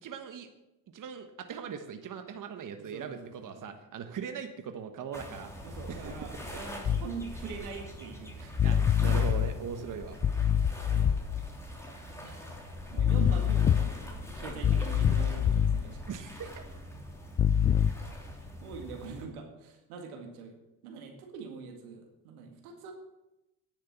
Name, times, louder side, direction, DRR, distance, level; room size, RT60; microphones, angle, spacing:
voice 1, 0.0-0.5 0.9-5.5 5.9-6.2 8.6-10.2 16.1-16.7, right 7 dB, 45° right, 7 dB, 1.3 m, -40 dB
voice 2, 2.8-3.8 5.6-8.7 9.4-9.5 10.9-11.1 12.2-12.5 12.9-16.1 18.6-20.6 20.8-22.9, right 5 dB, 90° right, 3 dB, 2.0 m, -43 dB
sound 1, 5.1-19.2, equal, 5° left, 3.2 m, -43 dB
sound 2, 6.8-7.1 8.6-9.6 10.2-11.5 13.0-14.1 14.6-15.8 17.4-17.9, left 8 dB, 25° left, 0.4 m, -25 dB
10.0 x 6.6 x 8.3 m, 0.96 s
hypercardioid pair, 65°, 43 cm